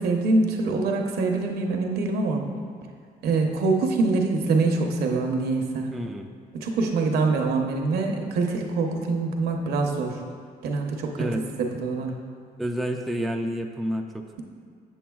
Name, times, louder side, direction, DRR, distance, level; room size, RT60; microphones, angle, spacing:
voice 1, 0.0-2.5 3.2-5.9 6.5-10.2 10.6-11.4 11.8-12.2, right 3 dB, 70° right, 2 dB, 0.8 m, -24 dB
voice 2, 5.9-6.3 11.2-11.5 12.6-14.2, equal, ahead, 3 dB, 0.3 m, -29 dB
7.6 x 7.2 x 2.3 m, 2.1 s
cardioid pair, 110°, 17 cm